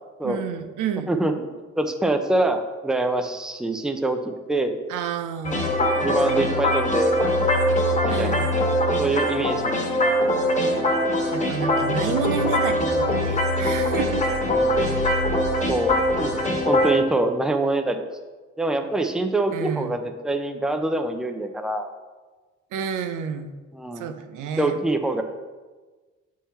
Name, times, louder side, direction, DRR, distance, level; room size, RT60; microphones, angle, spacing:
voice 1, 0.2-1.1 4.9-5.7 8.1-8.5 11.3-14.3 19.5-19.9 22.7-23.5 24.0-24.8, right 7 dB, 80° right, 8 dB, 0.6 m, -30 dB
voice 2, 1.1-1.5 1.8-4.8 5.6-7.2 8.0-8.5 9.0-9.7 14.5-14.8 15.7-16.3 16.7-18.0 18.6-21.9 23.7-24.1 24.6-25.2, right 2 dB, ahead, 6 dB, 0.5 m, -25 dB
sound 1, 5.4-16.9, left 1 dB, 25° left, 1.2 m, -22 dB
7.2 x 3.7 x 4.2 m, 1.3 s
cardioid pair, 90°, 30 cm